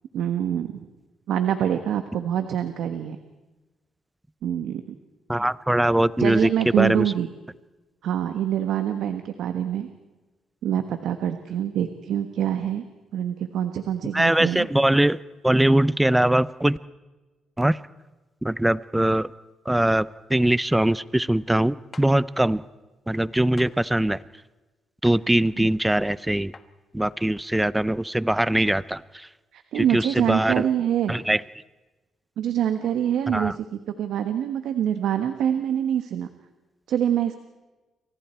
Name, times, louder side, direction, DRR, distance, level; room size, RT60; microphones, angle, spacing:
voice 1, 0.1-0.9 1.3-3.2 4.4-4.8 6.2-7.3 8.0-9.9 10.6-12.8 13.1-14.7 25.6-25.7 29.5-31.1 32.4-36.3 36.9-37.4, right 10 dB, 80° right, 8 dB, 1.4 m, -25 dB
voice 2, 5.3-6.5 6.8-7.1 14.1-15.2 15.4-16.8 17.6-17.8 18.4-19.3 19.7-22.6 23.1-24.2 25.0-26.5 26.9-29.3 29.7-30.6 31.1-31.4 33.3-33.6, right 1 dB, 10° right, 18 dB, 0.6 m, -22 dB
sound 1, 21.9-22.1 23.6-23.7 25.0-25.2 26.5-26.7, left 4 dB, 35° left, 1.5 m, -44 dB
29.5 x 25.0 x 4.5 m, 1.2 s
cardioid pair, 90°, 0 cm